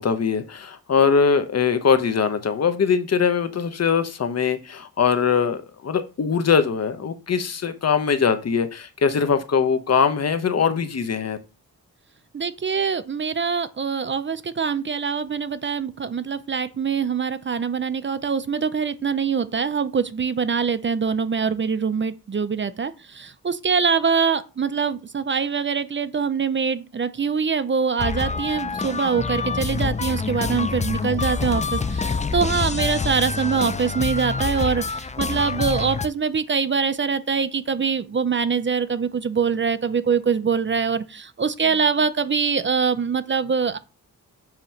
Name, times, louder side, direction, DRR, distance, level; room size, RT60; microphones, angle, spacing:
voice 1, 0.0-11.4, left 6 dB, 50° left, 1.0 m, -21 dB
voice 2, 12.3-43.8, right 6 dB, 35° right, 0.6 m, -24 dB
sound 1, 28.0-36.1, left 4 dB, 20° left, 0.5 m, -26 dB
7.8 x 3.0 x 5.7 m
cardioid pair, 95°, 33 cm